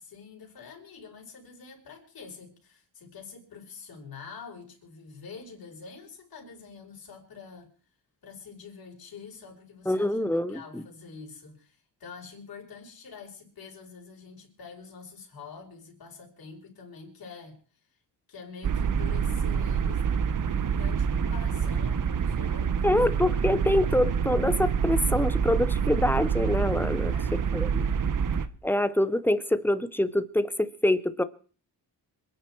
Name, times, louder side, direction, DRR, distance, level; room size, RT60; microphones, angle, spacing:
voice 1, 0.0-7.7 8.2-17.6 18.3-23.0 27.0-27.6, left 5 dB, 50° left, 5.0 m, -46 dB
voice 2, 9.9-10.8 22.8-27.9 28.6-31.2, left 1 dB, 5° left, 0.8 m, -25 dB
sound 1, 18.6-28.5, right 7 dB, 45° right, 1.0 m, -27 dB
26.5 x 9.6 x 4.6 m
wide cardioid pair, 150°, 45 cm